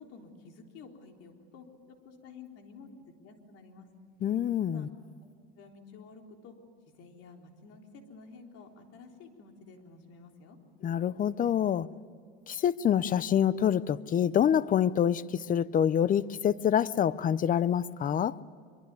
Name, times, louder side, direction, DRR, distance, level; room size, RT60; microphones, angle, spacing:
voice 1, 0.0-2.9 3.2-3.9 4.7-4.9 5.2-5.3 5.6-6.6 7.0-10.6, left 4 dB, 50° left, 3.9 m, -51 dB
voice 2, 4.2-4.9 10.8-11.9 12.5-18.4, left 9 dB, 25° left, 0.6 m, -26 dB
24.5 x 24.0 x 9.6 m
supercardioid pair, 120°, 30 cm